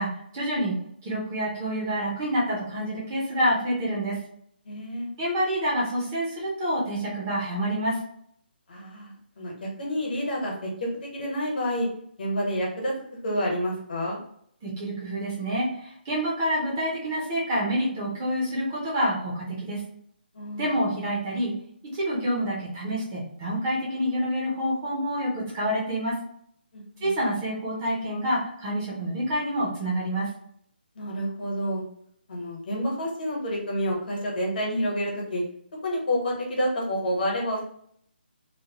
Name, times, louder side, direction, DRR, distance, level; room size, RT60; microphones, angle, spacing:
voice 1, 0.0-4.2 5.2-8.0 14.6-19.8 20.6-21.5 21.9-26.2 27.0-30.3, equal, 15° right, -6 dB, 0.6 m, -27 dB
voice 2, 4.6-5.1 8.7-11.9 12.2-12.9 13.2-14.2 20.3-20.7 26.7-27.1 30.9-31.8 32.3-35.4 35.8-37.6, equal, 55° left, -2 dB, 1.1 m, -29 dB
2.8 x 2.1 x 2.9 m, 0.67 s
hypercardioid pair, 175°, 6 cm